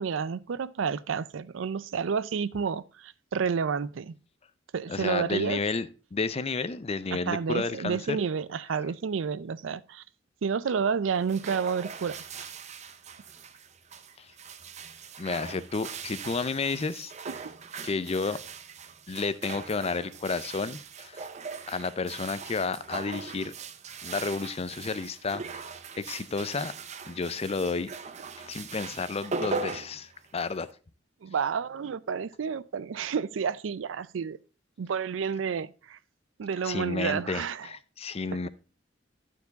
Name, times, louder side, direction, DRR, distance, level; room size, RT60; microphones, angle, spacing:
voice 1, 0.0-4.2 4.7-5.6 7.3-10.0 10.4-12.5 17.3-17.5 31.2-34.4 34.8-36.0 36.4-37.7, right 6 dB, 85° right, 0.4 m, -30 dB
voice 2, 4.9-8.2 14.2-14.3 15.2-17.1 17.8-18.4 19.1-21.3 21.7-23.5 24.0-25.7 26.0-26.7 27.0-27.9 28.4-30.7 36.6-38.5, left 4 dB, 35° left, 0.5 m, -31 dB
sound 1, 11.1-30.7, right 4 dB, 35° right, 0.6 m, -40 dB
12.0 x 4.7 x 4.0 m
head